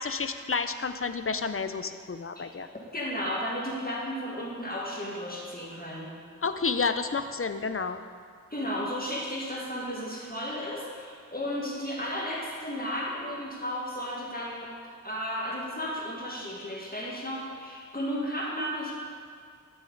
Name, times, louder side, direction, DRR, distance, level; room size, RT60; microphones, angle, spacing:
voice 1, 0.0-2.7 6.4-8.0, left 4 dB, 45° left, 10 dB, 0.5 m, -30 dB
voice 2, 2.9-6.1 8.5-14.7 15.0-18.9, equal, 30° left, -4 dB, 1.8 m, -34 dB
12.5 x 7.2 x 4.0 m, 2.1 s
wide cardioid pair, 50°, 32 cm